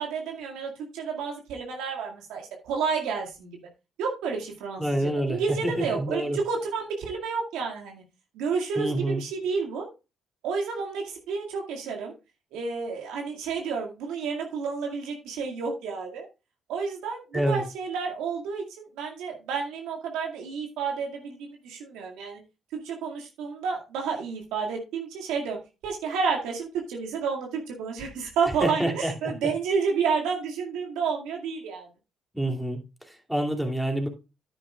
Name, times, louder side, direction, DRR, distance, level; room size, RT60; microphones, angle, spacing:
voice 1, 0.0-3.6 4.0-8.0 8.3-9.9 10.4-12.1 12.5-16.3 16.7-22.4 22.7-31.9, right 5 dB, 80° right, 0 dB, 2.1 m, -30 dB
voice 2, 4.8-6.4 8.8-9.2 17.3-17.6 28.6-29.3 32.3-34.1, right 1 dB, ahead, 2 dB, 2.8 m, -27 dB
10.0 x 9.3 x 2.4 m, 0.28 s
supercardioid pair, 60°, 0 cm